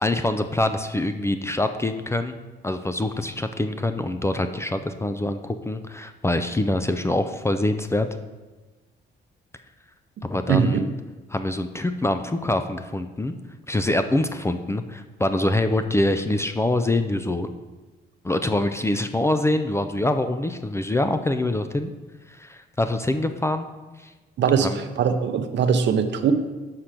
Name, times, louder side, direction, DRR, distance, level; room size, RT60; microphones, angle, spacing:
voice 1, 0.0-2.3 2.6-8.1 10.2-10.9 11.3-13.3 13.7-17.5 18.2-21.9 22.3-23.7 24.0-24.1 24.6-24.8, left 1 dB, 15° left, 8 dB, 0.4 m, -25 dB
voice 2, 10.5-10.8 24.4-26.3, right 7 dB, 65° right, 8 dB, 0.7 m, -21 dB
6.0 x 5.7 x 5.0 m, 1.2 s
cardioid pair, 90°, 20 cm